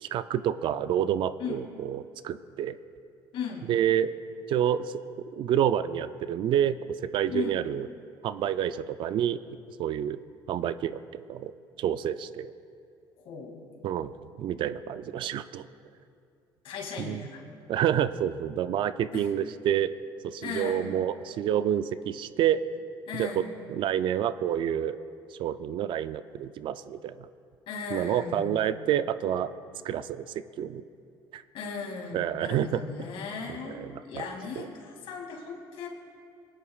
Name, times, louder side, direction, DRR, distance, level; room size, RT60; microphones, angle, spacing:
voice 1, 0.0-2.8 3.7-4.1 4.5-4.9 5.3-6.8 7.1-7.9 8.2-9.4 9.8-10.2 10.5-11.5 11.8-12.5 13.8-15.6 17.0-17.3 17.7-19.9 20.2-22.6 23.2-23.4 23.7-25.0 25.3-27.3 27.9-29.5 29.8-30.3 30.6-30.8 31.3-31.4 32.1-32.8 33.7-34.3 34.6-34.7, right 10 dB, 60° right, 14 dB, 0.4 m, -28 dB
voice 2, 3.3-3.7 7.3-7.6 13.2-13.7 16.6-17.4 19.1-19.3 20.4-20.9 23.1-23.5 27.7-28.6 31.5-35.9, left 5 dB, 65° left, 1 dB, 2.3 m, -37 dB
23.0 x 10.0 x 2.4 m, 2.5 s
cardioid pair, 110°, 10 cm